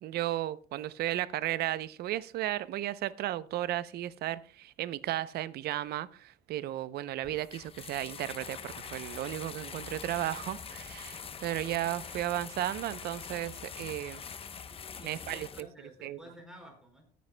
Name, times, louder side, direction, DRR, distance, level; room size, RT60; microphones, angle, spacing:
voice 1, 0.0-14.2 15.0-15.7 16.0-16.2, right 14 dB, 70° right, 0.6 m, -34 dB
sound 1, 7.2-15.6, left 6 dB, 35° left, 0.8 m, -44 dB
voice 2, 14.7-17.0, equal, 5° right, 4.7 m, -52 dB
19.0 x 9.3 x 2.2 m
cardioid pair, 110°, 17 cm